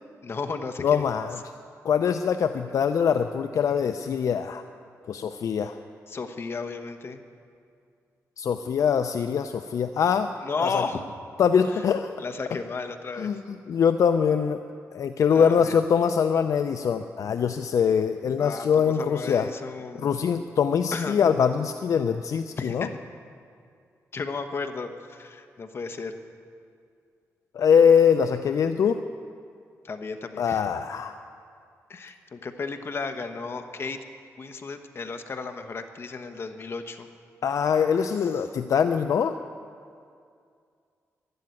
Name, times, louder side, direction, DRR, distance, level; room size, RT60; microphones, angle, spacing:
voice 1, 0.2-1.1 6.1-7.2 10.4-11.0 11.6-11.8 12.2-13.3 15.3-15.8 18.4-20.3 20.9-21.4 22.6-22.9 24.1-26.1 29.8-30.7 31.9-34.0 34.4-37.1 38.2-38.4, left 4 dB, 45° left, 7 dB, 1.2 m, -34 dB
voice 2, 0.8-1.4 1.8-4.6 5.1-5.8 8.4-10.3 10.6-10.8 11.4-12.1 13.2-13.4 13.7-14.6 14.9-19.5 20.0-22.9 27.5-29.0 30.4-31.2 37.4-39.4, left 7 dB, 70° left, 8 dB, 0.5 m, -23 dB
12.0 x 12.0 x 9.6 m, 2.3 s
cardioid pair, 100°, 6 cm